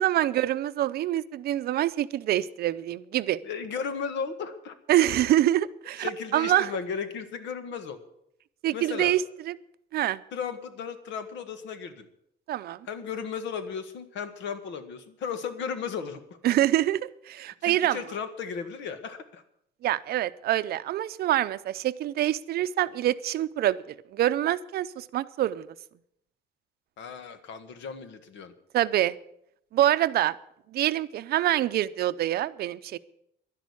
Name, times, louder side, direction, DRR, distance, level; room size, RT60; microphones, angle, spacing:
voice 1, 0.0-3.4 4.9-6.7 8.6-9.6 9.9-10.2 12.5-12.9 16.4-18.0 19.8-23.8 24.1-25.7 28.7-29.2 29.7-30.4 30.7-33.0, right 13 dB, 55° right, 14 dB, 0.6 m, -25 dB
voice 2, 3.4-4.8 6.0-8.0 8.7-9.1 10.3-12.1 12.9-16.2 17.6-19.4 27.0-28.5, left 6 dB, 75° left, 10 dB, 1.6 m, -35 dB
11.5 x 11.0 x 8.3 m, 0.76 s
cardioid pair, 170°, 19 cm